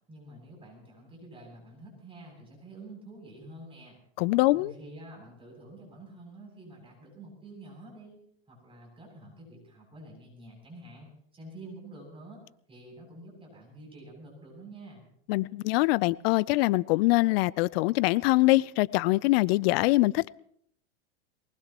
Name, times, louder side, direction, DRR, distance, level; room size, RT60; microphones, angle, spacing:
voice 1, 0.1-4.0 4.5-8.2 8.5-12.4 12.7-15.0, right 2 dB, 15° right, -1 dB, 7.6 m, -48 dB
voice 2, 4.2-4.7 15.3-20.3, left 20 dB, 55° left, 21 dB, 0.6 m, -24 dB
23.5 x 19.5 x 3.0 m, 0.66 s
hypercardioid pair, 115°, 35 cm